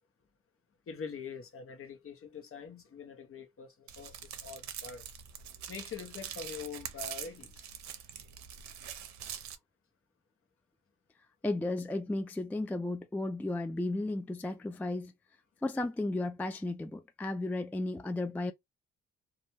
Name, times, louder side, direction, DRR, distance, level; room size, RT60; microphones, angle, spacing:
voice 1, 0.9-5.1 5.7-7.7, left 6 dB, 45° left, 0.9 m, -44 dB
sound 1, 3.9-9.5, right 9 dB, 65° right, 0.6 m, -44 dB
voice 2, 11.4-15.1 15.6-18.5, left 2 dB, 5° left, 0.3 m, -34 dB
2.4 x 2.1 x 3.0 m
hypercardioid pair, 50°, 31 cm